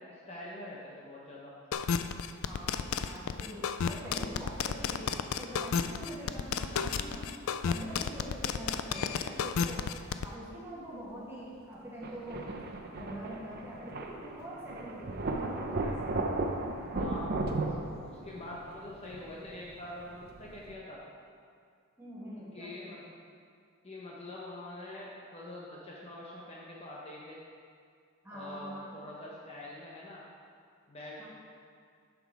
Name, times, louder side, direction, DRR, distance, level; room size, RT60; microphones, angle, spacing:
voice 1, 0.3-1.6 16.8-17.4 18.0-21.0 22.5-23.0 23.8-27.4 28.3-30.2 30.9-31.3, left 1 dB, 30° left, -5 dB, 0.9 m, -44 dB
sound 1, 1.7-10.3, left 7 dB, 75° left, 0.3 m, -31 dB
voice 2, 2.4-5.1 5.4-7.2 7.7-9.8 10.2-12.4 12.9-16.8 18.2-18.7 22.0-23.0 28.2-29.0 31.2-31.3, right 1 dB, 10° right, -9 dB, 2.1 m, -44 dB
sound 2, 6.7-7.3 7.6-8.7 9.1-9.2 12.0-20.7, right 2 dB, 50° right, 0.6 m, -36 dB
7.0 x 6.2 x 4.7 m, 2.2 s
head